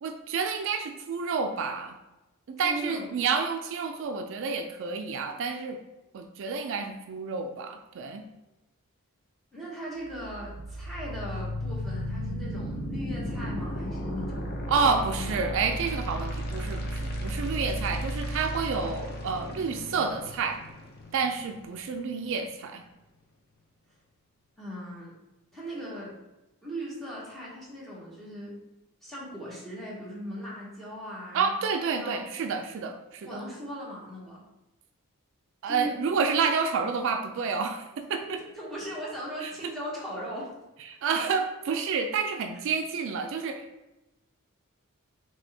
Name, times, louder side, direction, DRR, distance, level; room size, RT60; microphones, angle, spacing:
voice 1, 0.0-1.9 2.5-5.8 6.1-8.2 14.7-20.6 21.1-22.8 31.3-33.3 35.6-38.4 39.4-39.5 41.0-43.6, right 5 dB, 60° right, 6 dB, 0.3 m, -29 dB
voice 2, 2.6-3.1 9.5-15.6 24.6-25.1 25.5-26.1 26.6-28.6 29.0-31.5 32.0-32.3 33.2-34.4 35.7-35.9 38.2-40.5, equal, ahead, -6 dB, 1.1 m, -39 dB
sound 1, 10.0-22.0, equal, 45° left, 0.6 m, -34 dB
4.2 x 3.2 x 3.3 m, 1.0 s
head